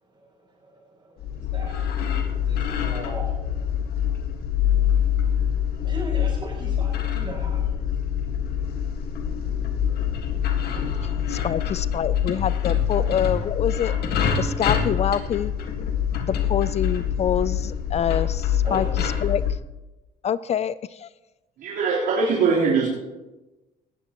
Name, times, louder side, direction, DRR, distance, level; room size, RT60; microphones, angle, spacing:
voice 1, 0.1-1.8 2.2-3.3 5.8-8.0 10.6-10.9 11.3-11.5 13.0-13.1 18.6-18.9, right 1 dB, 25° right, -8 dB, 5.7 m, -38 dB
sound 1, 1.2-19.5, left 8 dB, 70° left, 1.8 m, -25 dB
voice 2, 11.0-13.9 14.4-15.5 16.2-18.9 19.2-19.6 20.2-21.1, left 9 dB, 40° left, 17 dB, 0.4 m, -26 dB
voice 3, 21.6-22.9, right 5 dB, 75° right, -7 dB, 3.8 m, -21 dB
19.5 x 15.0 x 3.0 m, 1.1 s
cardioid pair, 110°, 17 cm